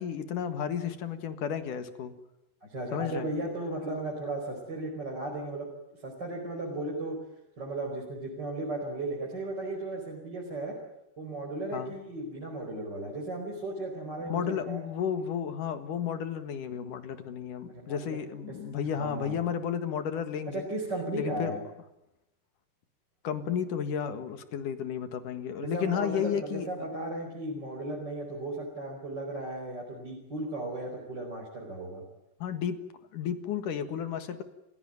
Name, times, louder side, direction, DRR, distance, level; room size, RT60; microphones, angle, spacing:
voice 1, 0.0-2.1 2.9-3.3 11.7-11.9 14.2-20.7 21.1-21.5 23.2-26.7 32.4-32.8 33.1-34.4, left 8 dB, 60° left, 10 dB, 2.9 m, -32 dB
voice 2, 2.6-5.7 6.0-7.2 7.6-10.8 11.2-14.8 17.8-18.2 18.7-19.4 20.5-21.6 25.7-32.0, right 2 dB, 25° right, -1 dB, 5.2 m, -35 dB
29.5 x 16.5 x 9.2 m, 0.88 s
omnidirectional pair, 4.6 m